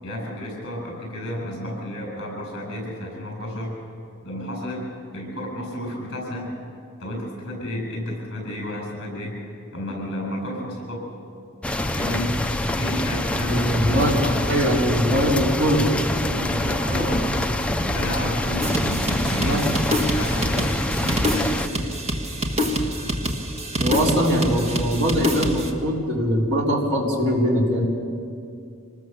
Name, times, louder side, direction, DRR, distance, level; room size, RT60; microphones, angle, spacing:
voice 1, 0.0-3.7 4.2-4.8 5.1-6.5 7.0-9.4 9.7-11.0 11.9-12.3 12.8-13.6 13.8-14.7 15.1-15.2 15.7-15.9 16.2-17.4 17.8-19.7 20.1-21.8, left 1 dB, 50° left, 1 dB, 7.7 m, -31 dB
sound 1, 11.6-21.7, left 1 dB, 5° left, 0.6 m, -25 dB
voice 2, 13.5-14.1 14.5-15.9 19.4-19.7 23.8-27.8, equal, 55° right, -2 dB, 3.9 m, -22 dB
sound 2, 18.6-25.7, equal, 30° right, 1.6 m, -26 dB
26.0 x 20.0 x 7.0 m, 2.4 s
head